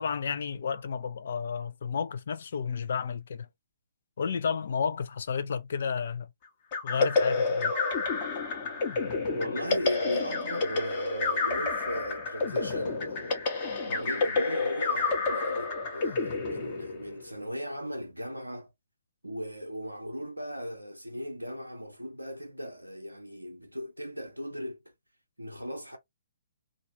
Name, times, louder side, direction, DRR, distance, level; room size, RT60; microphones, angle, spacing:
voice 1, 0.0-3.5 4.2-6.3 6.8-7.7, left 6 dB, 55° left, 0.5 m, -32 dB
sound 1, 6.7-17.3, left 3 dB, 35° left, 1.0 m, -29 dB
voice 2, 9.3-13.4 13.9-18.7 19.2-24.8 25.4-26.0, equal, 90° right, 0.6 m, -38 dB
2.6 x 2.4 x 2.9 m
figure-of-eight pair, 130°, 0 cm